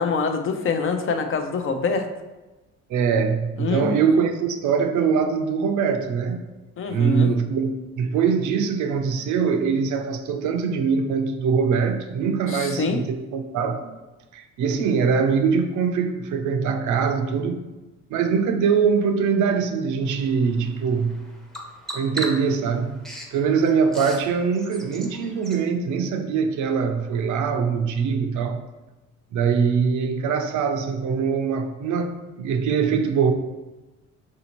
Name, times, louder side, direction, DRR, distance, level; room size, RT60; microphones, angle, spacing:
voice 1, 0.0-2.1 3.6-4.1 6.8-7.3 12.5-13.0, left 4 dB, 45° left, 6 dB, 0.5 m, -25 dB
voice 2, 2.9-6.4 6.9-14.0 14.3-17.6 18.1-21.2 21.9-28.6 29.3-33.3, right 6 dB, 75° right, 7 dB, 0.5 m, -23 dB
Bird vocalization bird call bird song, 20.0-25.6, right 1 dB, ahead, 0.6 m, -38 dB
5.0 x 2.7 x 2.9 m, 1.1 s
cardioid pair, 90°, 30 cm